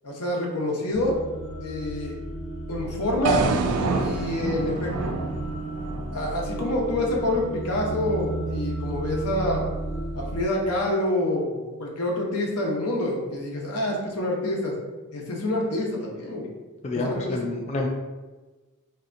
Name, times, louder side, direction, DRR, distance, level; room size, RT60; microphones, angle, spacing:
voice 1, 0.0-1.2 1.6-2.2 2.7-3.4 4.0-5.1 6.1-9.7 10.1-14.7 15.1-16.5 16.9-17.4, left 1 dB, 85° left, -1 dB, 0.7 m, -27 dB
sound 1, 0.9-10.4, right 1 dB, 30° right, 1.0 m, -33 dB
sound 2, 3.2-7.4, right 4 dB, 70° right, 0.3 m, -28 dB
voice 2, 16.8-17.9, left 2 dB, 30° left, 0 dB, 0.3 m, -28 dB
3.3 x 2.7 x 2.5 m, 1.2 s
head